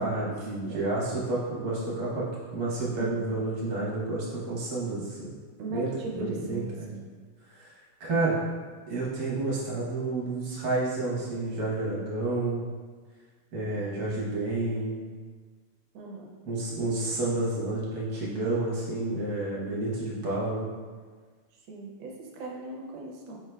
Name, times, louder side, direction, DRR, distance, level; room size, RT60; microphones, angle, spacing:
voice 1, 0.0-2.3 2.5-5.3 5.7-6.9 7.5-7.7 8.0-8.4 8.9-12.6 13.5-15.0 16.4-20.7, right 2 dB, 50° right, -6 dB, 1.4 m, -30 dB
voice 2, 3.0-3.3 5.6-7.0 13.6-14.3 15.9-16.3 21.7-23.4, right 3 dB, 70° right, -1 dB, 1.4 m, -39 dB
5.0 x 4.6 x 2.3 m, 1.5 s
omnidirectional pair, 2.4 m